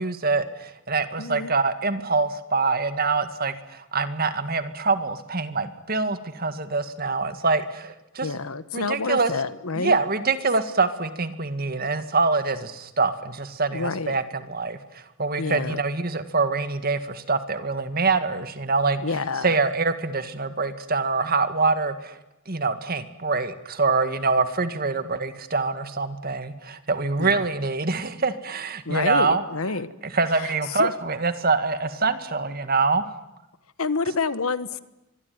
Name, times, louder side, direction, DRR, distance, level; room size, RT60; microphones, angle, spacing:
voice 1, 0.0-8.3 8.7-9.3 9.8-19.0 19.4-22.2 22.5-29.4 30.0-33.1, right 4 dB, 40° right, 10 dB, 2.0 m, -25 dB
voice 2, 1.2-1.5 8.2-10.0 13.7-14.2 15.4-15.8 19.0-19.6 27.2-27.4 28.8-29.9 30.4-30.9 33.8-34.8, left 4 dB, 80° left, 14 dB, 1.3 m, -28 dB
24.5 x 22.5 x 9.5 m, 0.93 s
head